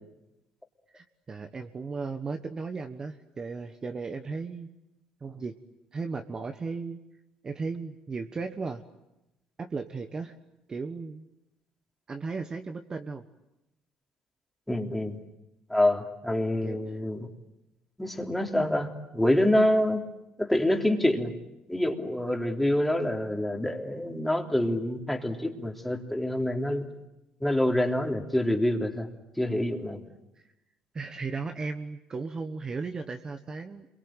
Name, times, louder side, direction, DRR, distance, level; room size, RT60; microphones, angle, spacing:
voice 1, 0.9-4.7 5.2-5.6 5.9-7.0 7.4-8.8 9.6-10.4 10.7-11.2 12.1-13.2 16.6-16.8 30.3-30.4 30.9-33.9, right 4 dB, 30° right, 7 dB, 1.3 m, -35 dB
voice 2, 14.7-15.2 15.7-17.3 18.0-20.0 20.4-21.3 21.7-26.9 27.4-29.1 29.4-30.0, left 1 dB, 5° left, 3 dB, 3.2 m, -26 dB
27.5 x 23.5 x 9.0 m, 0.93 s
cardioid pair, 115°, 2 cm